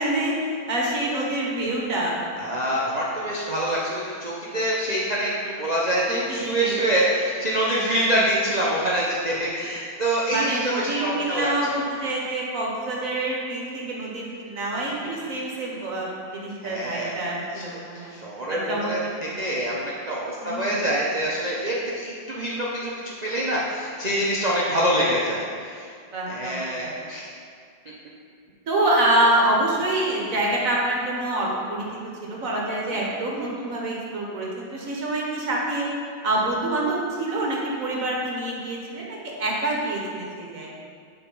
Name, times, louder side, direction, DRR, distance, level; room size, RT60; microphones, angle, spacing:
voice 1, 0.0-2.2 6.1-6.7 7.7-8.2 10.3-18.1 18.5-18.9 19.2-19.4 20.4-20.8 24.6-24.9 26.1-26.9 28.7-31.9 32.2-35.9 36.2-40.8, right 1 dB, 50° right, -3 dB, 1.3 m, -26 dB
voice 2, 2.4-11.5 16.6-17.3 17.5-17.8 18.1-25.9 26.3-27.3, right 1 dB, 75° right, -6 dB, 0.3 m, -25 dB
6.9 x 4.1 x 5.4 m, 2.2 s
omnidirectional pair, 2.0 m